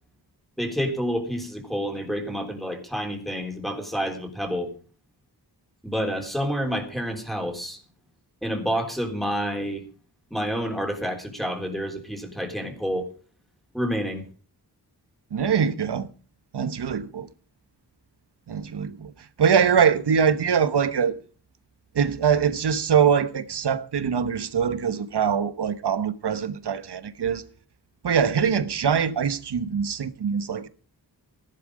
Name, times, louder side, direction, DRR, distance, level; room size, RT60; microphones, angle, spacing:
voice 1, 0.6-4.7 5.8-7.8 8.4-9.8 10.3-13.1 13.7-14.2, equal, ahead, 3.6 m, -28 dB
voice 2, 15.3-16.1 16.5-17.3 18.5-19.1 19.4-21.2 21.9-27.5 28.0-30.7, right 7 dB, 80° right, 1.1 m, -23 dB
14.5 x 11.5 x 5.0 m
wide cardioid pair, 95°, 40 cm